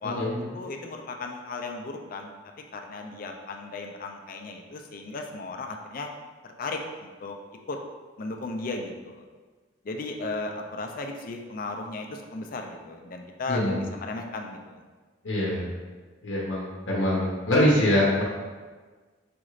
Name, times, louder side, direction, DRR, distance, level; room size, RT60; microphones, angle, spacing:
voice 1, 0.0-0.4 13.5-13.8 15.2-15.7 16.2-18.2, left 1 dB, 75° left, -4 dB, 0.7 m, -24 dB
voice 2, 0.5-2.3 2.7-6.1 6.4-7.4 7.7-7.8 8.2-9.2 9.8-14.8, left 3 dB, 45° left, 3 dB, 0.4 m, -35 dB
5.0 x 3.1 x 2.4 m, 1.4 s
head